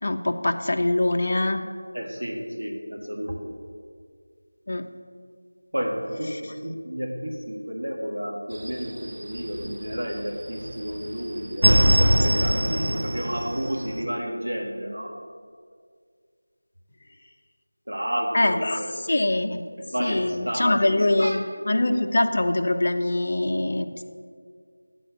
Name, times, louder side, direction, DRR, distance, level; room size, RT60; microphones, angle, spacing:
voice 1, 0.0-1.6 4.7-4.9 18.3-19.6 20.0-24.0, left 1 dB, 45° left, 5 dB, 0.5 m, -23 dB
voice 2, 1.9-3.5 5.7-15.1 17.9-18.9 19.8-21.4, equal, 85° right, 1 dB, 1.5 m, -31 dB
sound 1, 8.5-10.2 10.6-14.0, right 1 dB, 55° right, 0.6 m, -22 dB
10.0 x 4.2 x 6.7 m, 2.1 s
figure-of-eight pair, 175°, 0 cm